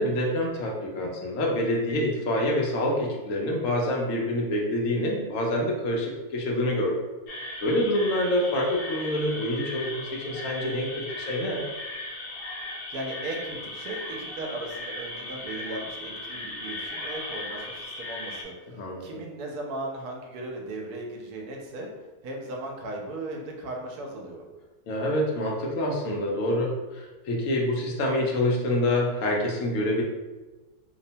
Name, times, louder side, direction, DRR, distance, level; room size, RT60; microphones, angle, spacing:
voice 1, 0.0-7.0 7.6-11.6 18.8-19.1 24.9-30.0, left 1 dB, 65° left, -1 dB, 0.9 m, -26 dB
sound 1, 7.3-18.4, left 2 dB, 80° left, 0.5 m, -37 dB
voice 2, 12.9-21.9 22.2-24.4, right 2 dB, 80° right, 0 dB, 1.1 m, -37 dB
2.9 x 2.1 x 2.7 m, 1.2 s
omnidirectional pair, 1.6 m